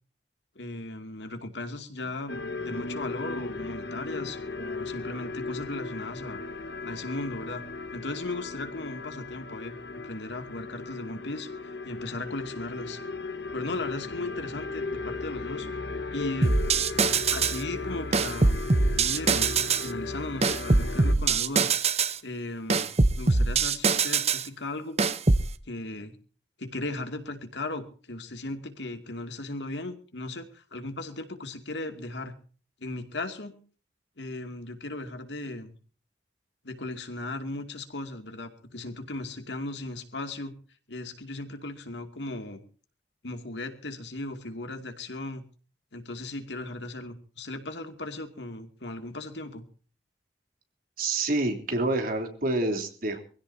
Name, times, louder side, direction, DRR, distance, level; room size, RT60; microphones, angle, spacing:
voice 1, 0.6-6.4 6.8-7.6 7.9-9.8 10.0-13.0 13.5-15.7 16.1-16.6 17.3-18.6 18.9-19.5 19.8-21.7 22.2-22.9 23.2-25.0 25.7-26.2 26.6-32.3 32.8-33.5 34.2-35.8 36.6-40.6 40.9-42.6 43.2-45.4 45.9-49.6, left 2 dB, 85° left, 6 dB, 2.5 m, -37 dB
sound 1, 2.3-21.1, left 3 dB, 70° left, 1.4 m, -36 dB
sound 2, 16.4-17.6 18.1-19.9 20.4-22.2 22.7-24.5 25.0-25.5, right 4 dB, 40° right, 0.9 m, -23 dB
voice 2, 51.0-53.2, right 2 dB, 55° right, 5 dB, 3.3 m, -27 dB
24.5 x 16.0 x 2.8 m, 0.40 s
head